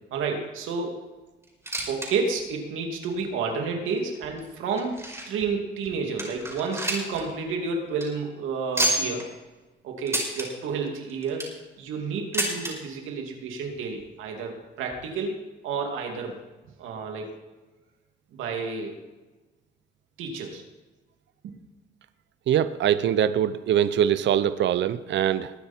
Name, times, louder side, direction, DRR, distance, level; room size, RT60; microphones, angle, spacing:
voice 1, 0.1-1.0 1.9-9.2 9.8-11.4 11.8-15.4 15.6-16.3 16.8-17.3 18.3-18.9 20.2-20.6 21.4-21.6, right 4 dB, 90° right, 2 dB, 2.8 m, -30 dB
sound 1, 1.4-2.1 2.4-2.5 3.1-3.2 4.0-5.4 5.9-6.0 6.2-7.2 7.5-7.6 7.9-8.0 8.7-9.2 10.1-10.5 11.1-11.6 12.3-12.7 13.7-13.8 14.0-14.1 14.9-15.0, right 1 dB, 15° right, 5.4 m, -28 dB
voice 2, 22.5-25.5, right 10 dB, 65° right, 14 dB, 0.7 m, -23 dB
21.0 x 9.4 x 4.5 m, 1.2 s
cardioid pair, 90°, 20 cm